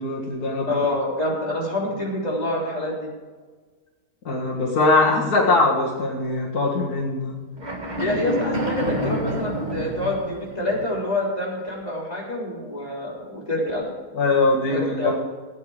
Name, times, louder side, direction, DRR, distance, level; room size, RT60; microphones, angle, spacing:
voice 1, 0.0-0.7 4.3-7.4 14.1-15.2, left 3 dB, 75° left, -2 dB, 2.3 m, -21 dB
voice 2, 0.7-3.0 8.0-13.8 14.7-15.2, left 1 dB, 25° left, -5 dB, 3.9 m, -26 dB
sound 1, 7.6-10.9, equal, 30° right, 1.9 m, -28 dB
17.0 x 9.1 x 4.9 m, 1.4 s
omnidirectional pair, 1.6 m